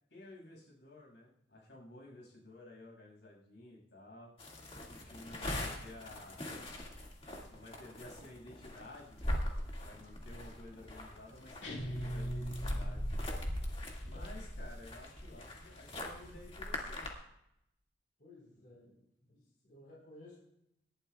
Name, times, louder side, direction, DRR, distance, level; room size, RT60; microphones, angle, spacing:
voice 1, 0.1-4.3 4.9-6.5 7.5-9.3 9.6-13.0 14.0-17.2, left 1 dB, 70° left, -2 dB, 6.3 m, -53 dB
sound 1, 4.4-17.1, left 1 dB, 30° left, 2.0 m, -41 dB
sound 2, 11.6-13.3, equal, 90° left, 2.0 m, -40 dB
voice 2, 18.2-20.4, left 1 dB, 50° left, -5 dB, 4.3 m, -57 dB
27.0 x 11.5 x 2.3 m, 0.80 s
head